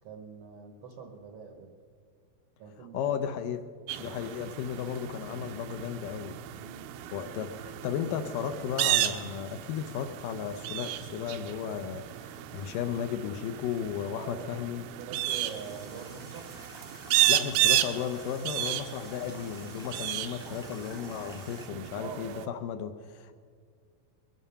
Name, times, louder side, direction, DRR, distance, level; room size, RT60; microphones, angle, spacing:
voice 1, 0.0-1.7 2.6-3.1 3.9-4.1 6.5-6.9 14.0-14.5 15.0-16.5 21.9-22.5, right 6 dB, 70° right, 3 dB, 1.3 m, -44 dB
voice 2, 2.9-3.6 4.0-6.4 7.1-14.9 17.3-23.4, left 8 dB, 75° left, 8 dB, 2.1 m, -35 dB
sound 1, 3.9-22.5, right 13 dB, 85° right, 2.5 m, -33 dB
sound 2, 15.3-21.7, left 1 dB, 30° left, 0.3 m, -50 dB
22.5 x 11.0 x 5.6 m, 2.1 s
omnidirectional pair, 4.2 m